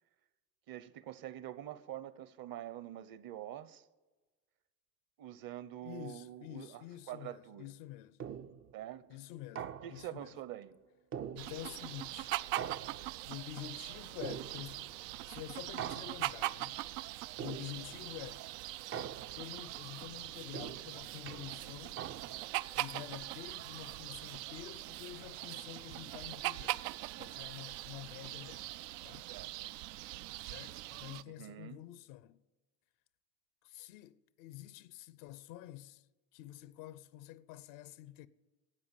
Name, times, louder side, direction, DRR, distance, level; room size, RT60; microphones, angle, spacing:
voice 1, 0.7-3.9 5.2-7.6 8.7-9.1 9.8-10.8 29.3-29.5 31.2-31.8, right 12 dB, 45° right, 0.9 m, -46 dB
voice 2, 5.8-8.2 9.1-10.3 11.3-12.3 13.3-17.1 17.4-18.5 19.3-22.0 22.7-26.9 27.2-28.7 29.0-29.3 30.5-32.4 33.6-36.0 36.3-38.3, left 14 dB, 65° left, 0.8 m, -48 dB
sound 1, 8.2-8.7 9.6-10.2 11.1-11.9 12.6-13.4 14.2-14.9 15.8-16.5 17.4-18.0 18.9-19.6 20.5-22.6, right 8 dB, 25° right, 0.5 m, -44 dB
sound 2, 11.4-31.2, right 17 dB, 70° right, 0.6 m, -42 dB
13.0 x 8.4 x 8.5 m
hypercardioid pair, 85°, 49 cm